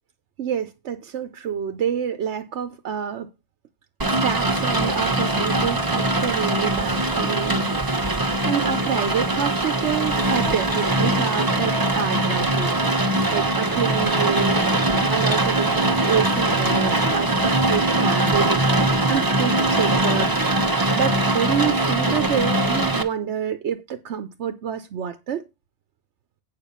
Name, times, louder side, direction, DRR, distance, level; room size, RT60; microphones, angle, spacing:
voice 1, 0.4-3.3 4.0-25.4, right 8 dB, 80° right, 1.1 m, -28 dB
Rain, 4.0-23.0, right 2 dB, 20° right, 1.1 m, -21 dB
9.1 x 5.5 x 5.5 m
omnidirectional pair, 1.1 m